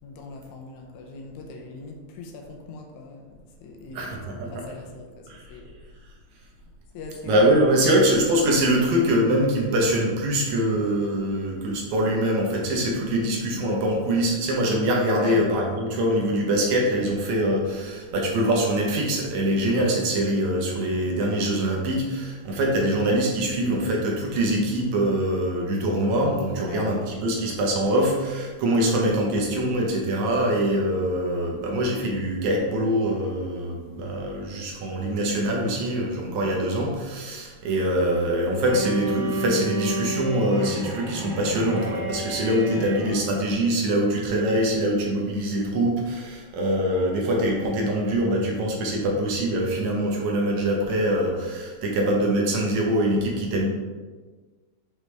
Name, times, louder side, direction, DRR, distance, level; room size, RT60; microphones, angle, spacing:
voice 1, 0.0-6.1 6.9-7.9 15.1-15.4 26.6-26.9 36.3-36.6 42.8-42.9, left 3 dB, 75° left, 1 dB, 2.0 m, -41 dB
voice 2, 4.0-4.6 5.3-5.6 7.3-53.7, right 1 dB, 70° right, -1 dB, 2.2 m, -24 dB
Bowed string instrument, 38.6-43.5, right 1 dB, 45° right, 1.9 m, -31 dB
6.2 x 5.1 x 3.3 m, 1.4 s
omnidirectional pair, 3.6 m